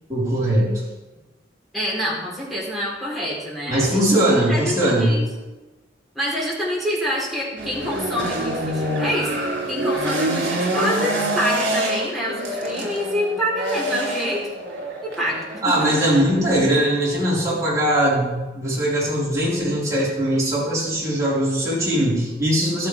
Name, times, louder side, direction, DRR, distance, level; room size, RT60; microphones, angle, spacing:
voice 1, 0.1-0.7 3.7-5.2 15.6-22.9, right 1 dB, 20° right, -8 dB, 5.0 m, -20 dB
voice 2, 1.7-4.0 4.5-5.2 6.2-14.5 15.2-16.0, equal, ahead, -6 dB, 3.9 m, -26 dB
sound 1, 7.6-15.6, right 1 dB, 70° right, 3.4 m, -26 dB
14.5 x 12.5 x 3.6 m, 1.1 s
head